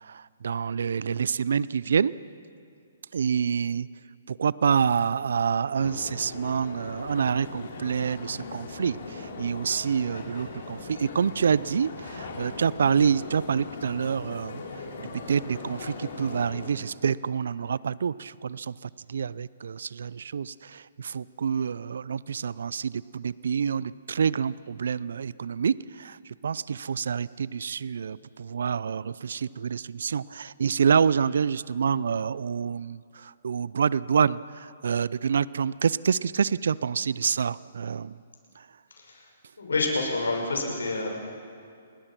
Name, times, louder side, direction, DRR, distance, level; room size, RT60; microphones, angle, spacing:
voice 1, 0.0-2.1 3.1-3.9 4.3-38.2 38.6-38.7, right 6 dB, 70° right, 20 dB, 0.5 m, -27 dB
sound 1, 5.8-16.7, left 3 dB, 60° left, 4.2 m, -40 dB
voice 2, 39.6-41.1, left 3 dB, 80° left, 1 dB, 6.1 m, -28 dB
29.5 x 21.0 x 6.0 m, 2.4 s
figure-of-eight pair, 130°, 0 cm